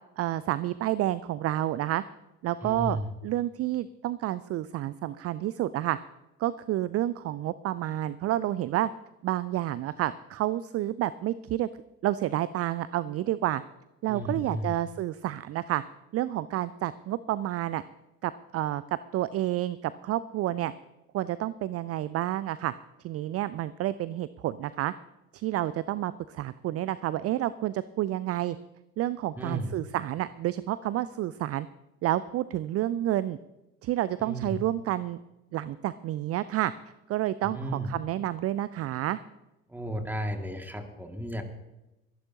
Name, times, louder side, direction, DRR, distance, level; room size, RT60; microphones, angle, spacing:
voice 1, 0.2-2.0 2.4-3.0 3.2-6.0 6.4-8.9 9.2-11.7 12.0-13.6 14.0-15.8 16.1-17.8 18.2-18.8 19.1-20.7 21.1-22.7 23.0-24.9 25.3-28.6 29.0-31.7 32.0-33.4 33.8-35.2 35.5-36.7 37.1-39.2, right 14 dB, 40° right, 17 dB, 0.5 m, -29 dB
voice 2, 2.6-3.1 14.1-14.8 29.4-29.7 34.2-34.6 37.4-37.9 39.7-41.4, right 1 dB, 5° right, 4 dB, 2.2 m, -33 dB
23.5 x 11.0 x 2.9 m, 0.96 s
figure-of-eight pair, 45°, 39 cm